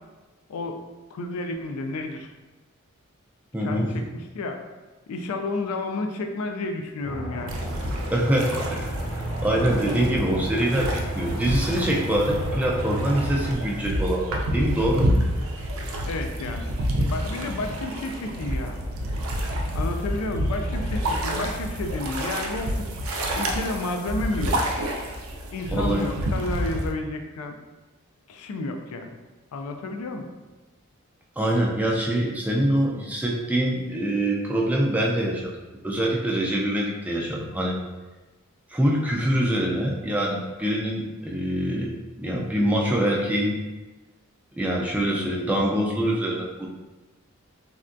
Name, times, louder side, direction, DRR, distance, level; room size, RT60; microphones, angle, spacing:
voice 1, 0.5-0.8 1.1-2.3 3.6-4.6 5.1-7.6 16.1-18.8 19.7-22.9 23.3-24.6 25.5-27.6 28.3-29.2 29.5-30.3, left 2 dB, 90° left, 5 dB, 0.3 m, -31 dB
voice 2, 3.5-4.0 8.1-9.0 9.4-15.1 25.7-26.2 31.4-37.8 38.7-43.6 44.6-46.7, right 1 dB, 5° right, -3 dB, 0.3 m, -24 dB
Aircraft, 7.0-13.5, equal, 35° left, 0.6 m, -32 dB
sound 1, 7.5-26.9, equal, 70° right, 0.4 m, -29 dB
3.5 x 2.2 x 2.5 m, 1.2 s
head